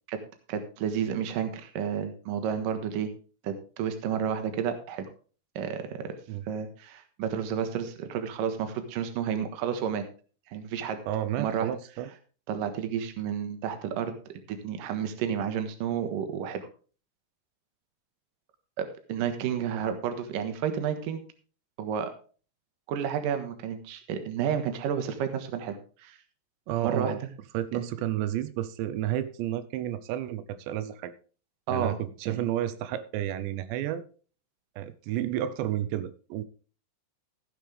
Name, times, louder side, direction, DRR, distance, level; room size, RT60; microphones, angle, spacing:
voice 1, 0.5-3.1 3.4-5.1 5.6-6.1 6.5-10.0 10.5-11.0 11.4-11.8 12.5-14.1 14.5-16.7 18.8-21.2 21.8-22.1 22.9-26.2 26.8-27.2 27.7-27.9 31.7-32.0 32.3-32.5, right 8 dB, 60° right, 8 dB, 2.7 m, -31 dB
voice 2, 11.1-12.1 26.7-27.2 27.5-31.1 31.7-34.0 34.8-36.4, right 12 dB, 90° right, 13 dB, 3.1 m, -31 dB
15.0 x 9.6 x 3.4 m, 0.38 s
omnidirectional pair, 4.9 m